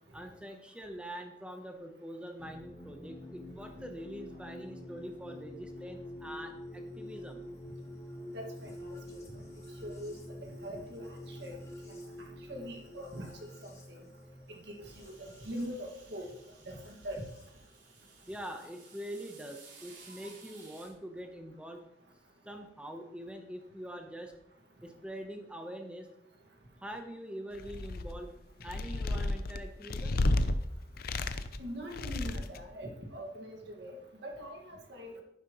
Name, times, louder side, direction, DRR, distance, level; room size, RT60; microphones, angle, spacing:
voice 1, 0.1-7.4 18.3-21.8 22.4-24.4 24.8-26.1 26.8-28.3 28.6-30.2, equal, 5° right, 4 dB, 0.9 m, -44 dB
sound 1, 2.4-17.5 18.6-19.3, left 1 dB, 15° left, 1.7 m, -47 dB
voice 2, 8.3-8.9 9.8-10.1 10.4-11.6 12.5-14.0 14.5-16.3 16.7-17.2 31.6-35.2, equal, 65° right, 1 dB, 1.9 m, -42 dB
sound 2, 14.8-20.9, right 4 dB, 90° right, 3.0 m, -57 dB
sound 3, 27.5-28.2 28.6-30.5 31.0-31.6 31.9-32.6, left 2 dB, 55° left, 0.5 m, -31 dB
10.5 x 10.0 x 3.1 m, 0.82 s
head